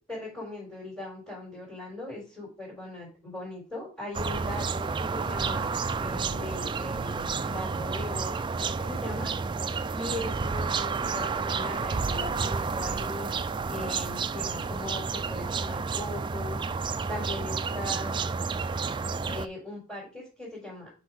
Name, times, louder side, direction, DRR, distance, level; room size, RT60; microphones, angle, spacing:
voice 1, 0.1-9.3 9.9-13.3 13.7-16.6 17.1-18.2 19.2-20.9, left 2 dB, 5° left, -7 dB, 3.9 m, -39 dB
sound 1, 4.1-19.5, right 4 dB, 25° right, 0.3 m, -30 dB
6.3 x 4.7 x 6.2 m, 0.34 s
head